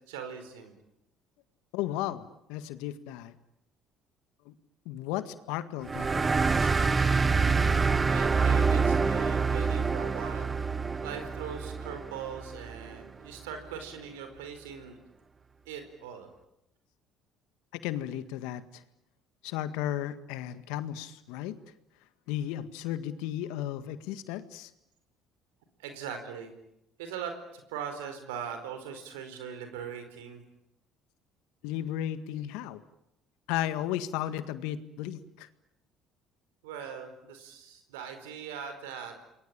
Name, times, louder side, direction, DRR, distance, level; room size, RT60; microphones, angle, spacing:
voice 1, 0.1-0.7 8.1-10.5 11.0-15.0 15.7-16.3 25.8-26.5 27.0-30.4 36.6-39.2, right 7 dB, 80° right, 7 dB, 4.6 m, -40 dB
voice 2, 1.7-3.3 4.5-4.6 4.9-6.7 17.7-18.8 19.4-21.6 22.3-24.7 31.6-32.8 33.5-35.5, left 12 dB, 75° left, 12 dB, 1.8 m, -34 dB
sound 1, 5.9-13.0, right 4 dB, 30° right, 1.1 m, -26 dB
28.5 x 22.5 x 8.9 m, 0.85 s
hypercardioid pair, 60°, 0 cm